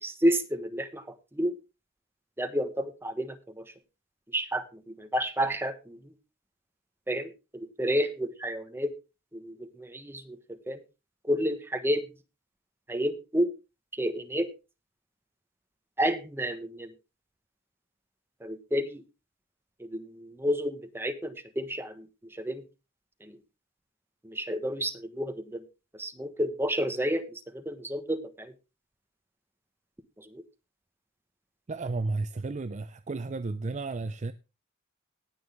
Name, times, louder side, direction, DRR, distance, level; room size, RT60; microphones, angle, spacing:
voice 1, 0.0-1.0 1.3-1.6 2.4-3.6 4.3-6.1 7.1-8.9 9.3-10.8 11.2-12.1 12.9-13.5 13.9-14.5 16.0-16.9 18.4-19.0 19.8-22.6 23.2-23.4 24.2-25.6 25.9-28.5 30.2-30.4, equal, 10° right, 1.2 m, -30 dB
voice 2, 31.7-34.3, right 3 dB, 35° right, 0.5 m, -33 dB
19.0 x 6.3 x 3.5 m
head